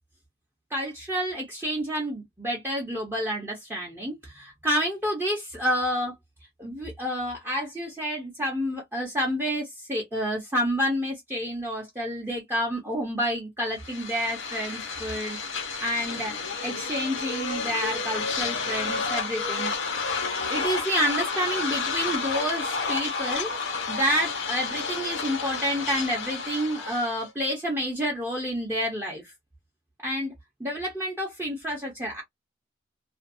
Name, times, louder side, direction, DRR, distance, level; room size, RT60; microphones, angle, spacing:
voice 1, 0.7-6.1 6.6-15.4 15.8-16.4 16.6-19.7 20.5-23.5 23.9-29.3 30.0-30.3 30.6-32.2, equal, 10° right, 0.6 m, -29 dB
sound 1, 13.7-27.3, left 5 dB, 85° left, 0.9 m, -31 dB
2.5 x 2.3 x 2.5 m
head